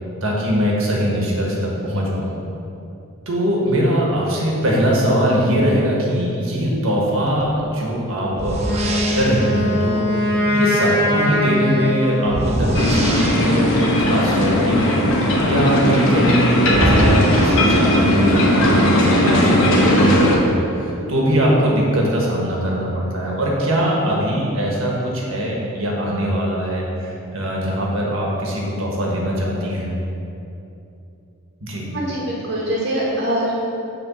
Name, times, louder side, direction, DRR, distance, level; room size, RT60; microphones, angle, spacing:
voice 1, 0.2-2.3 3.3-15.0 15.4-29.9 31.6-31.9, equal, 70° right, -3 dB, 1.4 m, -21 dB
sound 1, 7.4-7.6 8.3-9.6 12.2-13.8 16.1-16.2 16.7-18.3, right 1 dB, 30° right, 0.6 m, -23 dB
Wind instrument woodwind instrument, 8.6-12.7, left 1 dB, 10° left, 1.4 m, -21 dB
sound 2, 12.7-20.4, left 1 dB, 70° left, 1.0 m, -17 dB
voice 2, 31.9-33.5, right 1 dB, 50° right, -6 dB, 1.2 m, -23 dB
6.7 x 3.5 x 6.1 m, 2.8 s
head